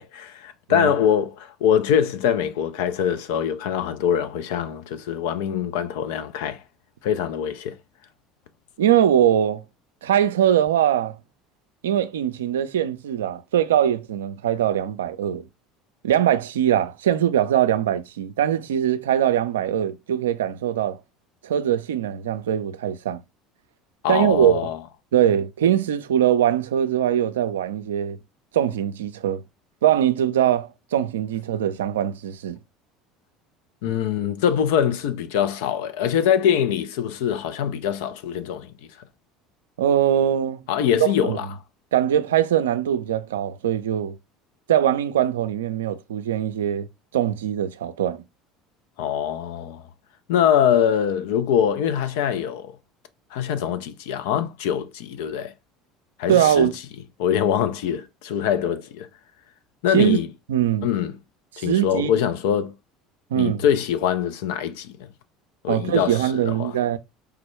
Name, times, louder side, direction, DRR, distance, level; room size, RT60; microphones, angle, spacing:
voice 1, 0.0-6.6 7.0-7.8 24.0-24.8 33.8-38.7 40.7-41.5 49.0-49.8 50.3-52.7 53.3-55.5 56.2-56.7 57.2-59.1 59.8-60.3 60.8-61.2 61.6-62.7 63.4-65.1 65.6-66.8, left 9 dB, 70° left, 0.5 m, -23 dB
voice 2, 8.8-9.6 10.0-11.2 11.8-15.4 16.0-21.0 21.4-23.2 24.1-24.6 25.1-28.2 28.5-29.4 29.8-32.6 39.8-40.6 41.2-41.4 41.9-44.1 44.7-46.9 47.1-48.2 56.3-56.7 59.9-60.2 60.5-60.9 61.6-62.1 63.3-63.6 65.7-67.0, right 10 dB, 80° right, 0.3 m, -21 dB
4.8 x 2.2 x 3.0 m
hypercardioid pair, 70°, 0 cm